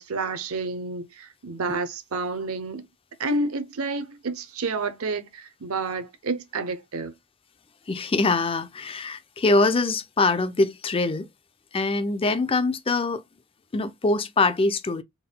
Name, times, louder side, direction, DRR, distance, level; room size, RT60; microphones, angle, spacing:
voice 1, 0.0-2.9 3.2-7.1, right 3 dB, 85° right, 0.7 m, -30 dB
voice 2, 7.9-11.3 11.7-13.2 13.7-15.0, left 3 dB, 25° left, 0.4 m, -23 dB
3.8 x 3.5 x 2.2 m
head